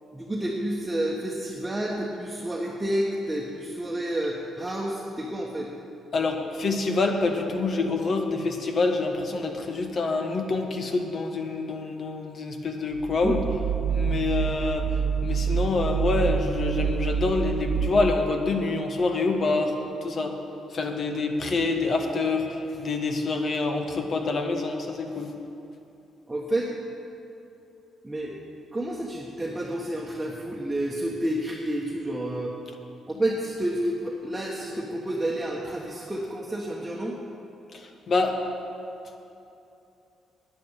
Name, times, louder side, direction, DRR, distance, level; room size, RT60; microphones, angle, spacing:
voice 1, 0.1-5.7 13.2-13.4 26.3-26.7 28.0-28.4 28.7-32.5 33.1-37.2, right 1 dB, 15° right, -4 dB, 1.3 m, -30 dB
voice 2, 6.1-13.4 13.9-14.9 15.2-19.7 20.0-20.4 20.7-25.3 37.7-38.4, left 3 dB, 50° left, 4 dB, 1.4 m, -26 dB
sound 1, 12.9-18.4, right 7 dB, 80° right, 1.1 m, -27 dB
10.5 x 9.5 x 7.3 m, 2.8 s
cardioid pair, 90°, 0 cm